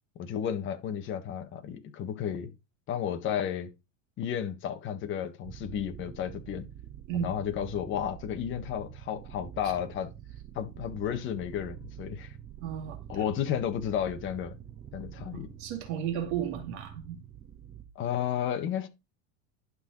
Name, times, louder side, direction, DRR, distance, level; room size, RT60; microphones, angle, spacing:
voice 1, 0.1-2.5 2.9-3.7 4.2-6.7 7.1-10.1 10.5-12.3 13.1-14.6 14.9-15.5 17.9-18.9, left 9 dB, 30° left, 1.4 m, -32 dB
sound 1, 5.4-17.8, right 10 dB, 25° right, 1.4 m, -46 dB
voice 2, 12.6-13.0 15.3-17.2, right 9 dB, 50° right, 2.6 m, -34 dB
11.5 x 5.7 x 4.0 m
supercardioid pair, 160°, 39 cm